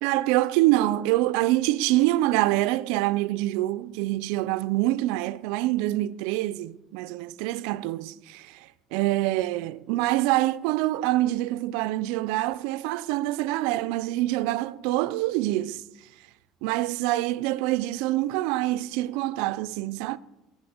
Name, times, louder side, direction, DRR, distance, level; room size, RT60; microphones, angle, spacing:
voice 1, 0.0-15.8 16.6-20.2, right 16 dB, 80° right, 0.3 m, -25 dB
9.5 x 4.1 x 7.0 m
cardioid pair, 140°, 0 cm